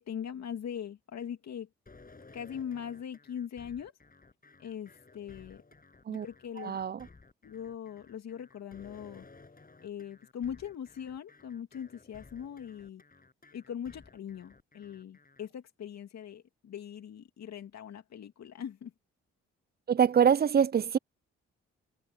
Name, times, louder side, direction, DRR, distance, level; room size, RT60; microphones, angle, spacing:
voice 1, 0.0-1.7 2.3-3.9 4.6-5.6 6.1-6.8 7.4-9.3 9.8-13.0 13.5-18.9, left 8 dB, 60° left, 2.7 m, -41 dB
sound 1, 1.9-15.5, left 3 dB, 30° left, 7.0 m, -56 dB
voice 2, 6.6-7.1 19.9-21.0, right 7 dB, 35° right, 0.5 m, -25 dB
supercardioid pair, 50°, 29 cm